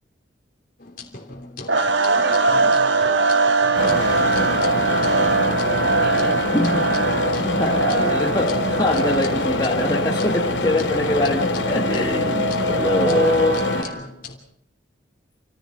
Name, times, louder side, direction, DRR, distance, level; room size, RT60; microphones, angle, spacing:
sound 1, 0.8-14.4, left 3 dB, 50° left, 3.1 m, -39 dB
sound 2, 1.7-14.1, right 3 dB, 80° right, 1.7 m, -22 dB
voice 1, 2.0-5.1 5.9-6.6 13.1-14.0, right 2 dB, 65° right, 6 dB, 5.0 m, -38 dB
sound 3, 3.7-13.8, left 2 dB, 80° left, 2.5 m, -25 dB
voice 2, 6.5-6.9 7.4-13.6, left 1 dB, 25° left, -1 dB, 1.8 m, -23 dB
28.5 x 15.0 x 6.7 m, 0.66 s
head